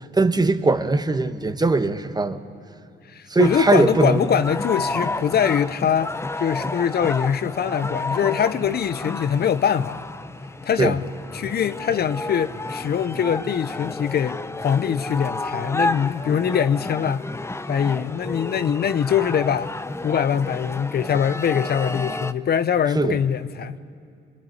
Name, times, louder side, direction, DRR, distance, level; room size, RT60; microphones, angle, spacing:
voice 1, 0.0-2.4 3.3-4.2 10.8-10.9 22.9-23.2, right 3 dB, 20° right, 10 dB, 1.4 m, -20 dB
voice 2, 3.1-10.1 10.6-11.0 11.3-17.2 17.7-19.7 20.0-23.8, left 8 dB, 55° left, 14 dB, 0.8 m, -23 dB
sound 1, 3.4-22.3, left 2 dB, 15° left, 0.8 m, -31 dB
26.0 x 21.5 x 10.0 m, 2.5 s
cardioid pair, 90°, 20 cm